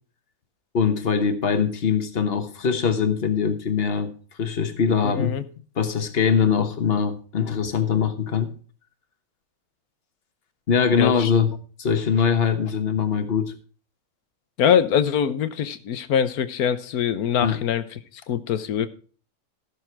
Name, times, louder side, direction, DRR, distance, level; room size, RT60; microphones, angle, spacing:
voice 1, 0.7-4.1 4.4-5.4 5.8-8.5 10.7-13.5 17.4-17.6, left 6 dB, 45° left, 9 dB, 1.4 m, -22 dB
voice 2, 5.0-5.4 11.0-11.3 14.6-17.8 18.3-18.9, left 8 dB, 85° left, 13 dB, 1.4 m, -23 dB
14.5 x 6.7 x 4.5 m, 0.40 s
omnidirectional pair, 1.5 m